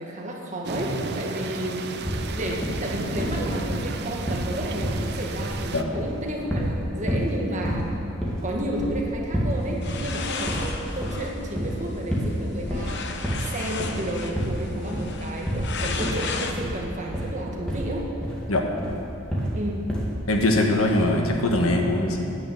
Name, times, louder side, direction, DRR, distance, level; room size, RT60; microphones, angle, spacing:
voice 1, 0.0-1.8 2.3-7.8 8.4-13.1 13.4-18.1 19.5-19.9, right 1 dB, 35° right, -2 dB, 1.8 m, -32 dB
sound 1, 0.6-5.8, right 3 dB, 50° right, 0.6 m, -33 dB
sound 2, 2.1-2.3 2.6-2.9 3.2-4.5 4.8-5.6 5.9-6.8 7.1-7.3 7.6-7.9 8.2-9.6 9.9-10.1 10.5-11.8 12.1-12.4 12.6-13.5 13.8-14.1 14.3-14.6 14.9-15.2 15.4-15.7 16.0-16.3 16.6-16.8 17.1-17.4 17.7-18.4 18.8-19.0 19.3-19.6 19.9-20.1 20.4-20.7 21.0-21.2 21.5-21.8, equal, 5° left, 2.1 m, -29 dB
sound 3, 9.6-16.5, left 4 dB, 55° left, 0.9 m, -34 dB
voice 2, 20.3-22.4, left 1 dB, 80° left, 2 dB, 1.4 m, -22 dB
9.8 x 8.8 x 8.1 m, 2.7 s
head